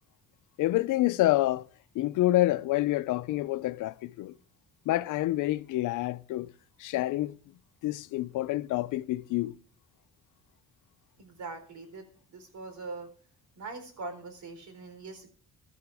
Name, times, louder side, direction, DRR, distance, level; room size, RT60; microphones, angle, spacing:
voice 1, 0.6-1.6 1.9-4.3 4.9-6.5 6.8-7.4 7.8-9.5, left 16 dB, 85° left, 0.6 m, -27 dB
voice 2, 11.2-12.0 12.3-13.1 13.6-15.3, right 3 dB, 70° right, 4.0 m, -42 dB
15.5 x 12.0 x 3.5 m
cardioid pair, 90°, 30 cm